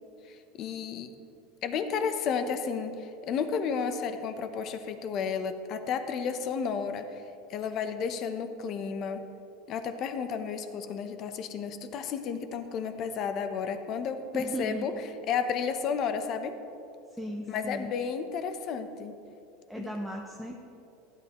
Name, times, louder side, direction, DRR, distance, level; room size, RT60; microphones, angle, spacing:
voice 1, 0.3-1.1 1.6-7.1 7.5-9.2 9.7-14.9 15.3-16.5 17.5-19.2 19.8-19.9, left 6 dB, 35° left, 9 dB, 0.7 m, -32 dB
voice 2, 14.3-14.9 17.1-17.9 19.7-20.6, equal, ahead, 0 dB, 0.6 m, -36 dB
15.5 x 11.0 x 3.0 m, 2.7 s
supercardioid pair, 165°, 0 cm